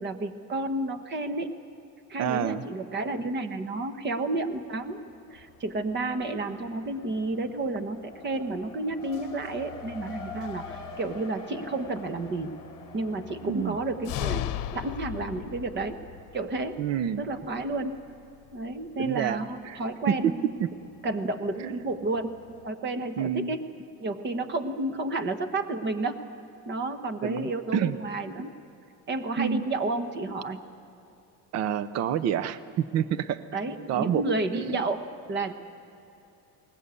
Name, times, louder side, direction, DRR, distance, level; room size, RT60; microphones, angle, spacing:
voice 1, 0.0-1.5 2.1-12.6 12.9-16.0 16.3-16.8 17.2-18.0 18.5-20.6 21.0-22.3 22.6-23.6 24.0-26.2 26.7-28.5 29.1-30.6 33.5-35.0 35.3-35.5, right 2 dB, 30° right, 9 dB, 1.2 m, -31 dB
voice 2, 2.2-2.6 13.4-13.8 16.8-17.2 19.0-19.4 19.7-19.8 20.2-20.3 20.6-20.7 21.6-21.7 23.2-23.5 27.2-27.9 29.4-29.7 31.5-33.4 33.9-34.2 34.5-34.8, right 9 dB, 45° right, 14 dB, 0.7 m, -28 dB
Race car auto racing, 4.4-5.2 5.5-16.8, left 3 dB, 15° left, 3.4 m, -47 dB
sound 1, 5.3-22.7, left 13 dB, 60° left, 0.9 m, -42 dB
21.5 x 19.5 x 8.3 m, 2.8 s
cardioid pair, 165°, 35 cm